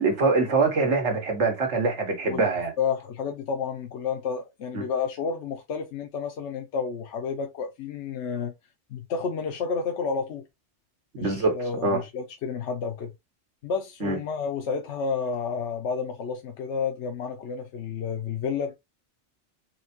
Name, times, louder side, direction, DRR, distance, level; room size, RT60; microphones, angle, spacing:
voice 1, 0.0-2.7 4.7-4.8 11.2-11.5 11.8-12.0 14.0-14.2, right 3 dB, 80° right, 1.6 m, -24 dB
voice 2, 2.8-8.5 8.9-10.4 11.2-13.1 13.6-18.7, left 5 dB, 75° left, 0.9 m, -30 dB
4.2 x 3.3 x 2.8 m
omnidirectional pair, 1.2 m